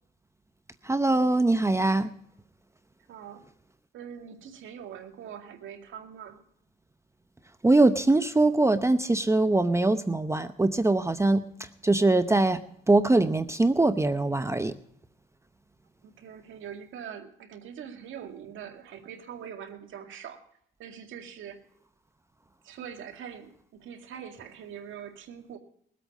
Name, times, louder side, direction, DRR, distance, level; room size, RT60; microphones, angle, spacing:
voice 1, 0.9-2.1 7.6-11.4 11.8-12.6 12.9-14.7, right 2 dB, 15° right, 10 dB, 0.8 m, -22 dB
voice 2, 3.1-3.4 3.9-6.4 16.0-20.4 20.8-21.6 22.6-25.6, right 8 dB, 80° right, 4 dB, 2.2 m, -43 dB
21.0 x 8.4 x 5.3 m, 0.67 s
cardioid pair, 90°, 20 cm